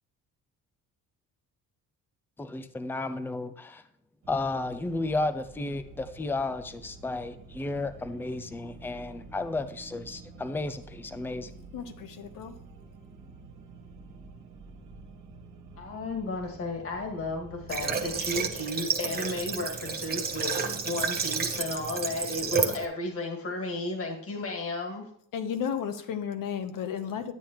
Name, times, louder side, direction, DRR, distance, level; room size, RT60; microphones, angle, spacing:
voice 1, 2.4-3.8 4.3-11.5, left 2 dB, 5° left, 10 dB, 0.4 m, -33 dB
sound 1, 4.2-18.6, right 3 dB, 55° right, 1.5 m, -49 dB
voice 2, 11.7-12.5 25.3-27.3, left 8 dB, 65° left, 9 dB, 1.0 m, -33 dB
voice 3, 15.8-25.1, left 2 dB, 40° left, 2 dB, 1.8 m, -34 dB
Water / Water tap faucet, 17.7-22.8, right 5 dB, 25° right, 0.9 m, -30 dB
10.0 x 9.0 x 3.0 m, 0.64 s
cardioid pair, 150°, 35 cm